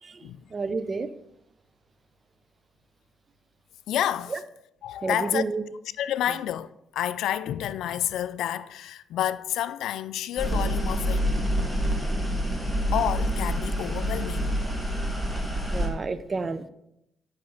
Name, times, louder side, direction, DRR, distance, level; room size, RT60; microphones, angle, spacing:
voice 1, 0.0-1.1 4.3-4.4 5.0-5.6 6.3-6.4 15.7-16.7, right 4 dB, 35° right, 0.5 m, -30 dB
voice 2, 3.9-4.4 4.8-5.4 6.0-6.7 6.9-11.3 12.9-14.6, left 11 dB, 80° left, 0.3 m, -29 dB
sound 1, 10.4-15.9, equal, 5° right, 1.7 m, -27 dB
8.6 x 5.7 x 3.9 m
cardioid pair, 90°, 0 cm